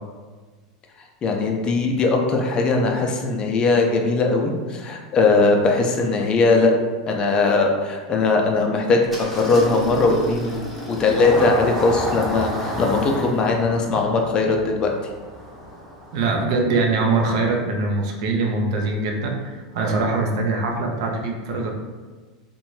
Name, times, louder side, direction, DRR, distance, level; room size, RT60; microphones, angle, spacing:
voice 1, 1.2-6.7 7.1-14.9, left 3 dB, 30° left, 2 dB, 0.4 m, -20 dB
Engine starting, 9.1-16.4, equal, ahead, 0.8 m, -31 dB
voice 2, 16.1-21.7, right 3 dB, 70° right, 1 dB, 0.5 m, -23 dB
2.6 x 2.2 x 3.1 m, 1.4 s
supercardioid pair, 120°, 3 cm